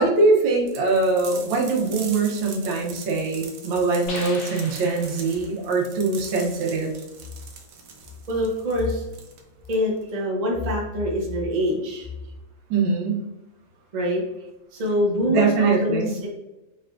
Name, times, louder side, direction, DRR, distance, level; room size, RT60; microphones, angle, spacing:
voice 1, 0.0-6.9 12.7-13.3 15.3-16.1, right 3 dB, 85° right, 0 dB, 1.6 m, -22 dB
sound 1, 0.7-10.1, right 5 dB, 65° right, 0.8 m, -42 dB
sound 2, 4.1-5.6, left 3 dB, 75° left, 1.6 m, -38 dB
voice 2, 8.3-9.0 9.7-12.1 13.9-14.2 14.7-16.3, left 1 dB, 40° right, -2 dB, 0.6 m, -25 dB
4.7 x 3.2 x 2.4 m, 1.0 s
omnidirectional pair, 2.1 m